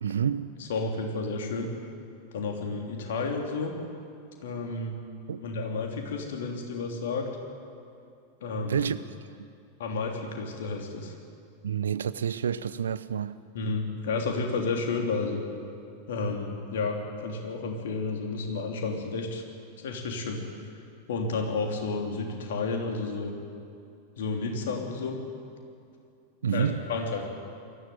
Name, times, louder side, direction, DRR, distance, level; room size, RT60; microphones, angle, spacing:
voice 1, 0.0-0.5 5.3-5.4 8.6-9.0 11.6-13.4 26.4-26.8, right 8 dB, 65° right, 0.7 m, -28 dB
voice 2, 0.6-1.7 2.3-3.7 4.4-4.9 5.4-7.3 8.4-8.9 9.8-11.1 13.5-15.4 16.1-19.4 19.8-20.4 21.1-23.3 24.2-25.2 26.5-27.2, left 3 dB, 60° left, 3.3 m, -31 dB
22.0 x 14.5 x 9.4 m
figure-of-eight pair, 90°, 0 cm